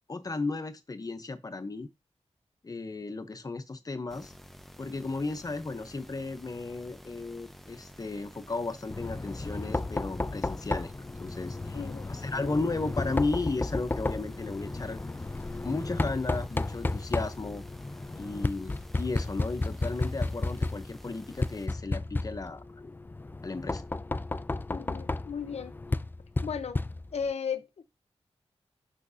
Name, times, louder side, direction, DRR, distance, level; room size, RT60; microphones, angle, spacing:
voice 1, 0.1-1.9 2.6-4.3 4.8-11.8 12.1-15.0 15.6-17.6 18.2-22.9 23.4-23.8, left 3 dB, 35° left, 0.8 m, -34 dB
sound 1, 4.1-21.7, equal, ahead, 0.7 m, -51 dB
Knock, 8.9-27.3, left 2 dB, 20° left, 0.3 m, -33 dB
voice 2, 11.7-12.2 24.7-25.8 26.4-26.8 27.1-27.8, left 6 dB, 75° left, 0.8 m, -35 dB
5.9 x 5.9 x 2.7 m
cardioid pair, 70°, 11 cm